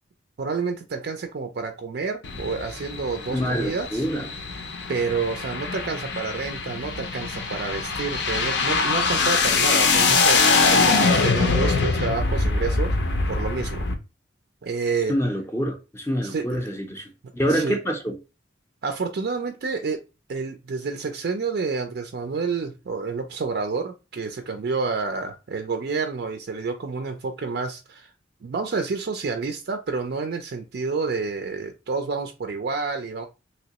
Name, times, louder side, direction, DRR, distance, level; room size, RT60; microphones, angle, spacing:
voice 1, 0.4-4.0 4.9-13.0 13.3-13.8 14.6-15.1 16.2-16.5 17.5-17.8 18.8-20.0 20.3-28.1 28.4-33.3, right 4 dB, 55° right, 0.4 m, -29 dB
sound 1, 2.2-13.9, left 4 dB, 65° left, 0.6 m, -23 dB
voice 2, 3.3-4.3 15.1-18.2, equal, 15° left, 0.5 m, -26 dB
3.0 x 2.9 x 2.8 m
head